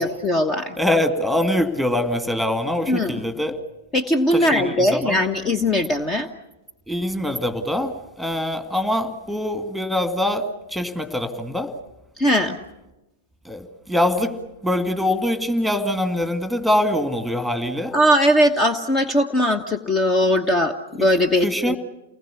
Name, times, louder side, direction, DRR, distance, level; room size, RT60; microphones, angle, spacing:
voice 1, 0.0-0.7 2.9-3.2 3.9-6.3 12.2-12.6 17.9-21.8, left 1 dB, 20° left, 9 dB, 1.3 m, -20 dB
voice 2, 0.8-3.5 4.3-5.2 6.9-7.9 8.2-10.5 10.7-11.7 13.5-14.3 14.6-17.9 21.0-21.1 21.4-21.8, left 1 dB, ahead, 9 dB, 2.2 m, -23 dB
29.0 x 20.0 x 7.1 m, 0.98 s
figure-of-eight pair, 100°, 0 cm